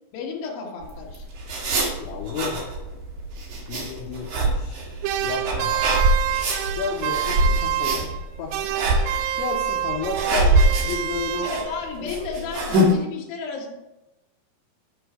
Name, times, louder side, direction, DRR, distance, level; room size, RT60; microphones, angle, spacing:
voice 1, 0.1-1.2 11.4-13.7, left 5 dB, 65° left, -2 dB, 2.5 m, -33 dB
sound 1, 0.8-12.9, right 1 dB, 60° right, 2.1 m, -24 dB
voice 2, 2.0-2.6 3.7-4.8 5.2-5.7 6.8-8.5 9.4-10.6 10.8-11.5 12.0-12.3, left 6 dB, 80° left, -1 dB, 2.8 m, -31 dB
sound 2, 5.0-8.3 8.5-11.9, right 12 dB, 85° right, 2.7 m, -27 dB
9.3 x 4.8 x 4.9 m, 0.96 s
omnidirectional pair, 6.0 m